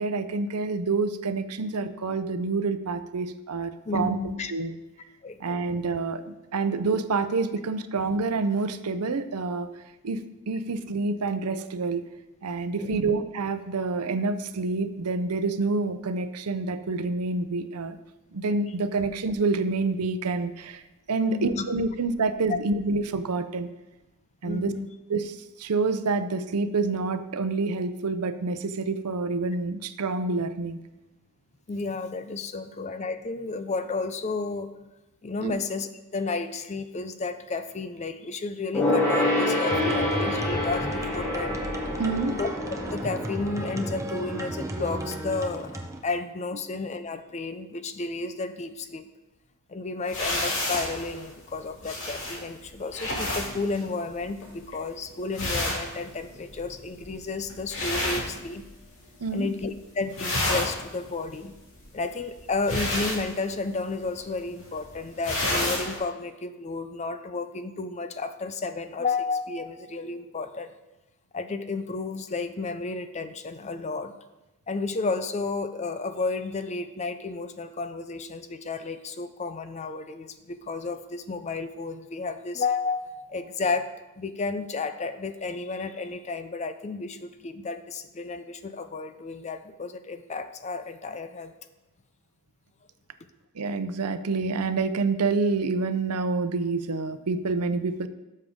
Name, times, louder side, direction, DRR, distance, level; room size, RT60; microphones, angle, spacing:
voice 1, 0.0-4.2 4.5-4.7 5.4-10.2 10.5-12.0 12.4-18.0 18.3-20.8 21.1-23.7 24.4-24.7 25.1-30.8 35.4-35.5 42.0-42.4 59.2-59.5 93.5-98.1, right 3 dB, 90° right, 10 dB, 0.6 m, -27 dB
voice 2, 3.8-4.5 5.2-5.4 12.8-13.1 21.2-21.6 22.5-22.6 24.4-24.9 31.7-34.7 35.2-41.6 42.4-42.5 42.9-49.1 49.7-58.6 59.3-61.6 61.9-70.7 71.3-74.1 74.7-91.5, left 3 dB, 30° left, 10 dB, 0.5 m, -32 dB
Gong, 38.7-44.6 44.9-45.0, left 1 dB, 10° left, 2.2 m, -27 dB
sound 1, 39.7-46.0, right 1 dB, 15° right, 0.8 m, -34 dB
sound 2, 50.1-59.0 59.3-59.8 60.0-66.0, left 1 dB, 60° left, 2.4 m, -31 dB
12.5 x 6.5 x 3.7 m, 1.0 s
head